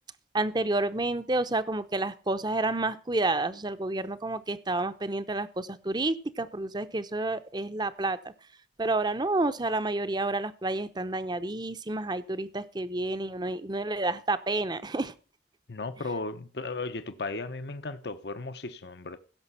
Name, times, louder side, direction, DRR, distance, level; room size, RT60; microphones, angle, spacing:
voice 1, 0.3-8.3 8.8-15.1, right 2 dB, 25° right, 0.7 m, -30 dB
voice 2, 15.7-19.2, left 3 dB, 65° left, 0.9 m, -35 dB
16.0 x 6.8 x 5.6 m
head